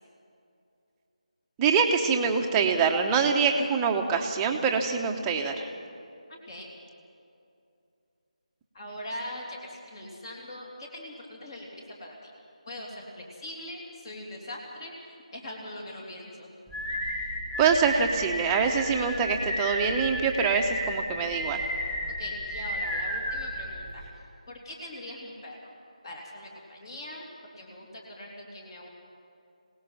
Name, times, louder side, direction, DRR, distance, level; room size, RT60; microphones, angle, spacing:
voice 1, 1.6-5.7 17.6-21.6, right 5 dB, 10° right, 2 dB, 1.1 m, -25 dB
voice 2, 6.3-6.7 8.7-12.3 12.7-16.5 22.2-24.0 24.5-25.6 26.0-27.3 27.5-28.9, left 1 dB, 35° left, -1 dB, 3.1 m, -41 dB
sound 1, 16.7-24.1, equal, 5° left, 2.3 m, -32 dB
26.5 x 18.0 x 5.8 m, 2.6 s
figure-of-eight pair, 165°, 4 cm